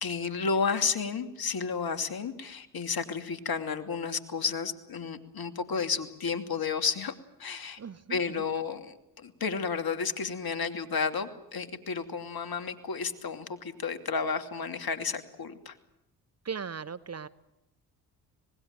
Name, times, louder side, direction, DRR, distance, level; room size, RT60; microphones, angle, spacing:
voice 1, 0.0-7.1 7.4-7.8 8.1-15.7, left 5 dB, 45° left, 9 dB, 2.8 m, -32 dB
voice 2, 7.8-8.2 16.4-17.3, right 6 dB, 30° right, 20 dB, 1.0 m, -37 dB
26.5 x 20.0 x 7.6 m, 0.88 s
hypercardioid pair, 50°, 48 cm